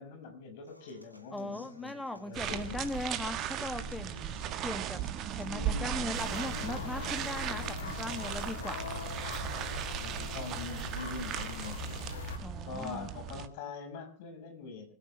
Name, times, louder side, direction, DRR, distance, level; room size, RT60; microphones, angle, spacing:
voice 1, 0.0-2.9 5.5-6.0 10.0-12.1 12.7-14.9, left 5 dB, 50° left, 6 dB, 5.7 m, -44 dB
Human voice / Acoustic guitar, 0.7-8.7, equal, 90° left, 2.4 m, -55 dB
voice 2, 1.3-4.4 4.6-5.0 5.3-8.8 12.4-13.1, left 1 dB, 5° left, 8 dB, 2.3 m, -39 dB
sound 1, 2.3-13.5, right 10 dB, 35° right, 1.5 m, -37 dB
sound 2, 6.1-12.4, left 5 dB, 65° left, 3.0 m, -41 dB
25.0 x 13.5 x 3.4 m, 0.34 s
figure-of-eight pair, 90°, 0 cm